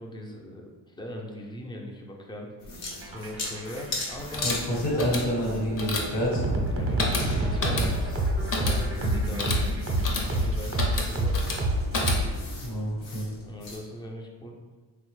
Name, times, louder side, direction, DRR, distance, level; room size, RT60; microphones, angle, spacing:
voice 1, 0.0-2.5 3.0-4.8 6.8-9.5 10.2-11.4 13.4-14.5, left 1 dB, 10° left, 0 dB, 0.4 m, -40 dB
sound 1, 2.6-13.8, left 2 dB, 90° left, 0.9 m, -40 dB
sound 2, 2.9-12.7, right 1 dB, 30° right, 0.6 m, -28 dB
sound 3, 4.1-12.5, left 2 dB, 50° left, 0.7 m, -32 dB
voice 2, 4.4-6.4 12.6-13.2, equal, 75° left, -4 dB, 1.2 m, -28 dB
3.3 x 2.1 x 3.1 m, 1.4 s
cardioid pair, 90°, 42 cm